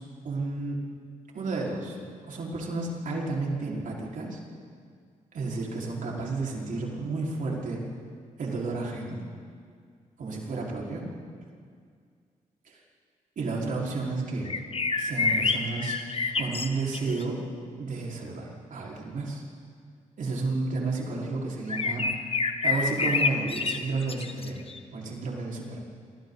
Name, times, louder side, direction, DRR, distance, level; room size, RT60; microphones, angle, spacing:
voice 1, 0.2-0.8 1.3-2.0 2.3-4.4 5.3-7.8 8.4-9.2 10.2-11.0 12.6-12.8 13.3-14.5 15.0-16.0 16.4-17.4 17.8-19.4 20.2-24.6 24.9-25.8, right 3 dB, 65° right, -3 dB, 5.0 m, -32 dB
sound 1, 14.5-17.2 21.7-24.8, left 4 dB, 40° left, 1.4 m, -28 dB
27.5 x 24.0 x 4.2 m, 2.1 s
cardioid pair, 60°, 14 cm